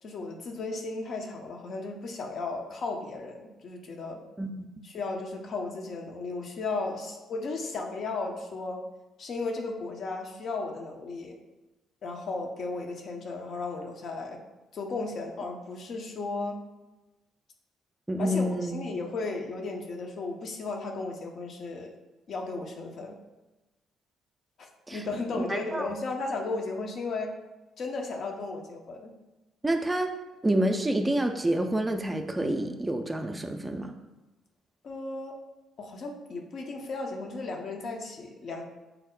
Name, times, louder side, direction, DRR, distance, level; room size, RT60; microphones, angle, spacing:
voice 1, 0.0-4.2 4.8-8.8 9.2-11.4 12.0-14.4 14.7-16.6 18.2-21.9 22.3-23.2 24.9-27.3 27.8-29.1 34.8-35.4 35.8-38.6, left 3 dB, 50° left, 2 dB, 0.6 m, -35 dB
voice 2, 18.1-18.7 24.9-25.0 25.4-25.9 29.6-30.1 30.4-33.9, right 1 dB, 15° right, 5 dB, 0.4 m, -28 dB
4.4 x 2.0 x 3.8 m, 1.1 s
figure-of-eight pair, 45°, 0 cm